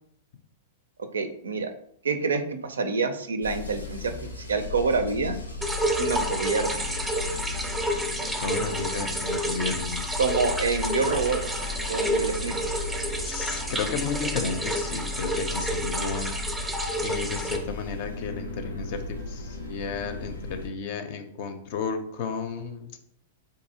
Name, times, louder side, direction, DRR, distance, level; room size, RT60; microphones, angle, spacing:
voice 1, 1.1-1.7 2.0-5.4 6.0-6.8 10.2-11.4 11.9-12.6, right 4 dB, 75° right, 8 dB, 0.4 m, -27 dB
sound 1, 3.4-20.7, left 4 dB, 85° left, 0.7 m, -36 dB
sound 2, 5.6-17.6, right 1 dB, 5° right, 0.5 m, -30 dB
voice 2, 8.4-10.0 13.2-16.3 17.0-19.0 19.3-22.9, left 5 dB, 50° left, 7 dB, 0.5 m, -32 dB
3.8 x 2.7 x 2.7 m, 0.67 s
figure-of-eight pair, 100°, 0 cm